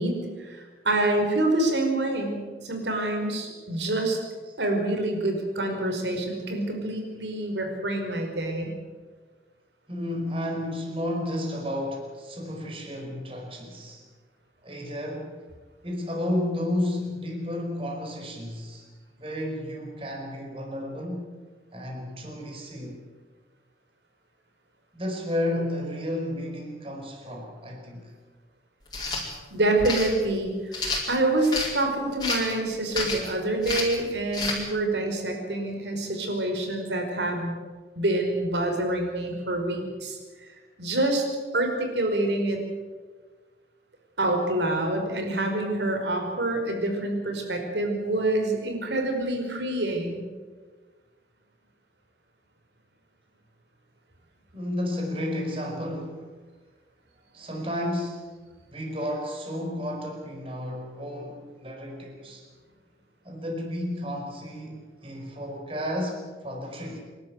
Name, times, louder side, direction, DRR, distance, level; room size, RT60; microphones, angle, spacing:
voice 1, 0.0-4.2 4.6-8.7 29.5-30.8 31.1-37.6 37.9-40.2 40.8-41.3 41.5-42.6 44.2-50.3, right 1 dB, 85° right, 3 dB, 5.1 m, -26 dB
voice 2, 9.9-14.0 14.6-15.4 15.8-18.8 19.2-21.3 21.7-23.0 24.9-28.1 41.5-41.6 54.5-56.3 57.3-58.3 58.7-62.5 63.2-67.0, left 1 dB, 30° right, 1 dB, 4.8 m, -32 dB
sound 1, 28.9-29.2 29.8-30.1 30.7-31.7 32.2-32.5 32.9-33.3 33.6-34.0 34.3-34.6, left 3 dB, 25° left, 4.8 m, -29 dB
27.0 x 12.5 x 9.6 m, 1.4 s
head